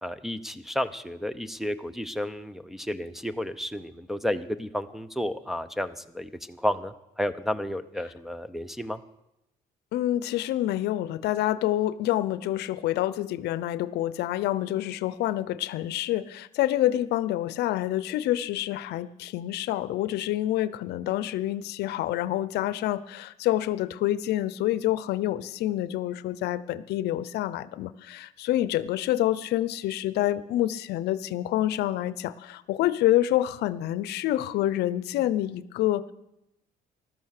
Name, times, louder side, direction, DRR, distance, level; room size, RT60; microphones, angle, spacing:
voice 1, 0.0-9.0, left 1 dB, ahead, 7 dB, 0.7 m, -32 dB
voice 2, 9.9-36.1, left 14 dB, 75° left, 17 dB, 0.7 m, -27 dB
14.5 x 12.0 x 6.5 m, 0.87 s
cardioid pair, 110°, 17 cm